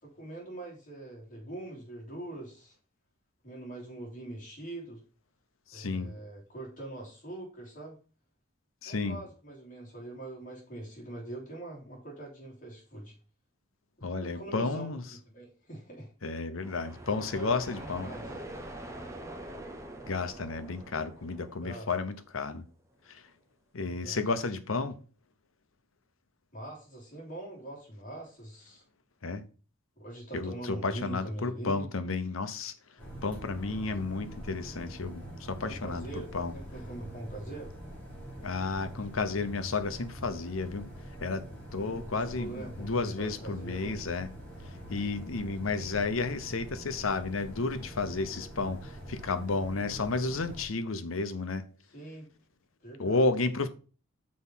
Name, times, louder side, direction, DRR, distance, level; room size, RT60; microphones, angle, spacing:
voice 1, 0.0-2.7 3.4-5.0 5.7-8.0 8.8-13.1 14.0-16.3 17.1-18.3 21.6-21.9 23.8-24.2 26.5-28.8 30.0-31.9 35.6-37.7 41.8-44.0 51.9-52.3 52.8-53.2, right 1 dB, 40° left, 3.2 m, -43 dB
voice 2, 5.7-6.1 8.8-9.2 14.0-15.0 16.2-18.1 20.1-22.6 23.1-23.2 23.7-25.0 29.2-29.4 30.3-32.7 33.2-36.1 36.3-36.5 38.4-40.9 41.2-41.5 41.7-44.3 44.9-51.6 53.0-53.7, left 3 dB, 80° left, 0.9 m, -32 dB
sound 1, 16.6-22.3, right 1 dB, 15° right, 1.0 m, -44 dB
sound 2, 33.0-50.7, equal, 5° left, 3.1 m, -44 dB
6.4 x 4.8 x 5.6 m
head